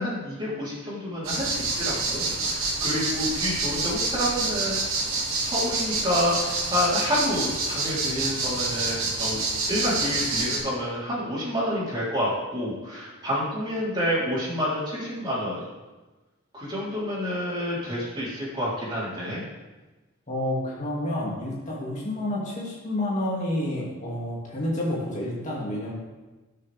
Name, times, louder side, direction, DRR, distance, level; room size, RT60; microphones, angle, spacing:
voice 1, 0.0-4.8 5.4-9.4 9.7-15.6 16.5-19.4, equal, 20° right, -8 dB, 3.7 m, -28 dB
sound 1, 1.2-10.6, right 3 dB, 85° right, 2.5 m, -27 dB
voice 2, 20.3-26.0, left 1 dB, 35° left, -5 dB, 2.3 m, -29 dB
18.5 x 6.6 x 3.5 m, 1.2 s
head